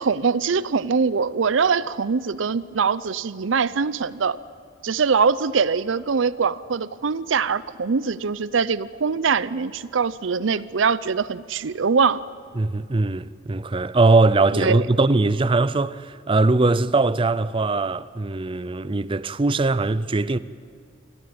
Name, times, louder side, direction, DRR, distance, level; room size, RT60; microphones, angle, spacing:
voice 1, 0.0-4.4 4.8-12.2 14.5-14.9, right 5 dB, 75° right, 0.6 m, -23 dB
voice 2, 12.6-20.4, right 3 dB, 25° right, 0.5 m, -21 dB
25.0 x 14.5 x 8.8 m
head